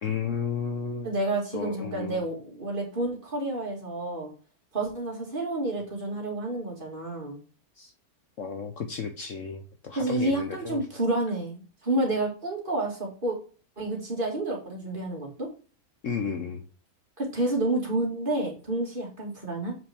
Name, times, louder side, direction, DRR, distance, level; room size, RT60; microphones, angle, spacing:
voice 1, 0.0-1.1 1.5-2.2 7.8-7.9 8.4-11.0 16.0-16.6, left 6 dB, 55° left, 5 dB, 1.1 m, -33 dB
voice 2, 1.0-4.3 4.7-7.4 10.0-13.4 13.8-15.5 17.2-19.8, right 2 dB, 30° right, -1 dB, 2.3 m, -29 dB
7.6 x 5.7 x 3.5 m, 0.37 s
omnidirectional pair, 1.7 m